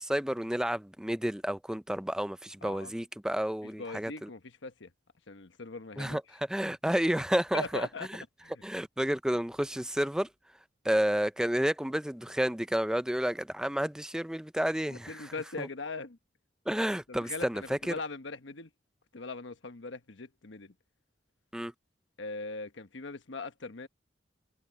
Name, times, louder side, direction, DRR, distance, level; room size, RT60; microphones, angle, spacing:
voice 1, 0.0-4.3 6.0-7.9 8.1-8.2 8.6-10.3 10.8-15.7 16.7-17.9 21.5-21.7, equal, 5° right, 0.4 m, -31 dB
voice 2, 2.6-2.9 3.6-4.9 5.3-6.2 7.5-8.1 8.4-8.6 14.9-16.2 17.1-18.7 19.1-20.7 22.2-23.9, left 3 dB, 80° left, 1.2 m, -40 dB
head